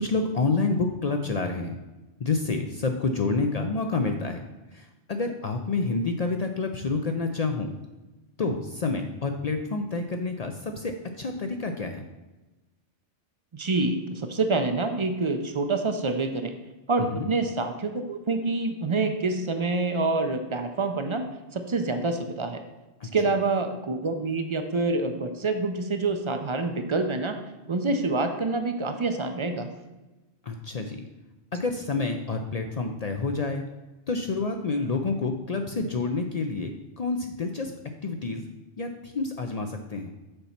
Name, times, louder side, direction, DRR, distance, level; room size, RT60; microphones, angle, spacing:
voice 1, 0.0-1.8 2.2-4.4 4.7-7.7 8.4-12.0 17.0-17.3 23.0-23.1 30.4-31.0 31.5-33.6 34.1-37.7 38.0-38.4 38.8-40.1, left 3 dB, 55° left, 5 dB, 0.4 m, -28 dB
voice 2, 13.5-16.6 16.9-22.6 23.1-27.4 27.7-29.7, right 3 dB, 45° right, 6 dB, 0.4 m, -27 dB
6.6 x 4.1 x 5.7 m, 1.1 s
omnidirectional pair, 1.2 m